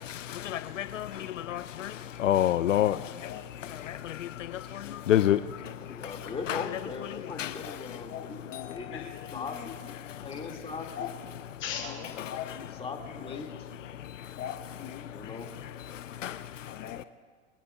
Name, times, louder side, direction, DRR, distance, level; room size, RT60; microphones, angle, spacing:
voice 1, 0.5-1.1 1.5-1.9 2.2-3.0 5.1-5.4 6.5-6.6 7.4-7.5 16.2-16.3, left 12 dB, 80° left, 0.6 m, -25 dB
voice 2, 2.8-3.5 7.6-7.7 8.1-9.0 9.3-9.4 11.0-11.1 11.6-12.7 14.4-14.5 14.8-15.0 16.7-17.0, left 9 dB, 30° left, 1.1 m, -40 dB
voice 3, 5.9-9.8 10.2-11.1 11.6-12.3 12.7-13.5 15.1-15.5, left 4 dB, 15° left, 2.2 m, -40 dB
24.0 x 17.5 x 2.3 m
hypercardioid pair, 105°, 37 cm